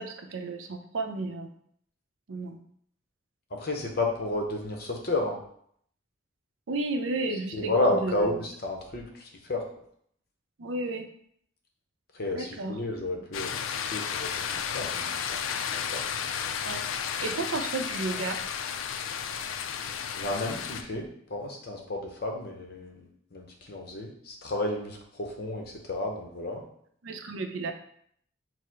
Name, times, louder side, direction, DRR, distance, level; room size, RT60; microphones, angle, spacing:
voice 1, 0.0-1.5 2.3-2.6 6.7-8.3 10.6-11.0 12.3-12.8 13.1-13.3 16.6-16.9 17.2-18.4 27.0-27.7, right 2 dB, 85° right, 5 dB, 0.5 m, -32 dB
voice 2, 3.5-5.4 7.3-9.6 12.1-16.1 20.2-26.7, left 2 dB, 50° left, 1 dB, 0.7 m, -32 dB
sound 1, 13.3-20.8, left 7 dB, 85° left, 0.3 m, -33 dB
4.7 x 2.0 x 4.5 m, 0.67 s
head